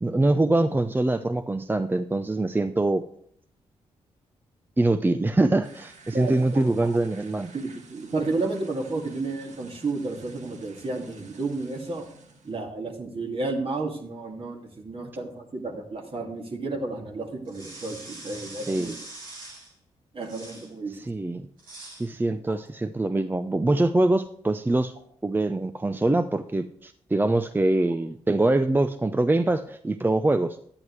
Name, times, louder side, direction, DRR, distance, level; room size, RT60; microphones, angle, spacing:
voice 1, 0.0-3.0 4.8-7.5 18.7-18.9 20.9-21.5 22.0-24.9 25.2-30.6, right 2 dB, 15° right, 11 dB, 0.5 m, -24 dB
sound 1, 5.6-12.6, right 4 dB, 65° right, 1.3 m, -51 dB
voice 2, 6.1-6.9 7.5-12.0 12.4-18.9 20.1-21.1 22.5-22.6, right 3 dB, 45° right, 1 dB, 2.2 m, -32 dB
sound 2, 17.4-19.7 20.2-20.7 21.6-22.1, right 2 dB, 85° right, 2.4 m, -43 dB
10.5 x 9.7 x 3.2 m, 0.65 s
hypercardioid pair, 40°, 13 cm